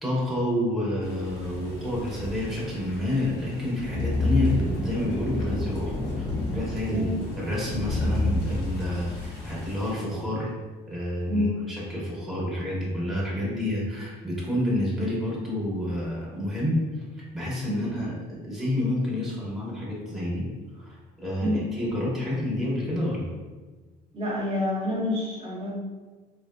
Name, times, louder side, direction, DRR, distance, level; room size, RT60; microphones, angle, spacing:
voice 1, 0.0-7.1 7.4-10.5 10.9-11.5 11.9-16.8 17.3-20.4 20.8-21.0 21.2-23.3, left 1 dB, ahead, -7 dB, 1.0 m, -29 dB
sound 1, 1.0-9.9, left 1 dB, 70° left, 1.0 m, -30 dB
voice 2, 24.1-25.8, left 1 dB, 35° right, -6 dB, 0.9 m, -27 dB
3.6 x 2.5 x 2.2 m, 1.3 s
cardioid pair, 110°, 17 cm